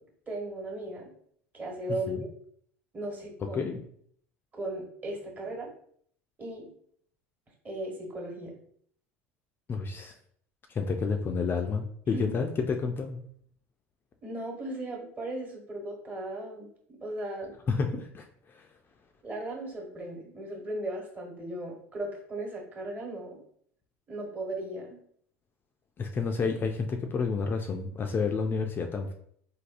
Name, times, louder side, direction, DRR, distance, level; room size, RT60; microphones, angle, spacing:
voice 1, 0.3-1.1 1.5-2.3 2.9-3.6 4.6-5.7 6.4-6.7 7.6-8.5 12.1-12.3 14.2-16.7 17.0-17.5 19.2-23.4 24.1-25.0, right 1 dB, 25° right, -1 dB, 1.2 m, -37 dB
voice 2, 9.7-10.2 10.7-13.2 17.7-18.7 26.0-29.1, left 5 dB, 30° left, 4 dB, 0.3 m, -30 dB
3.3 x 2.2 x 2.5 m, 0.63 s
hypercardioid pair, 80°, 7 cm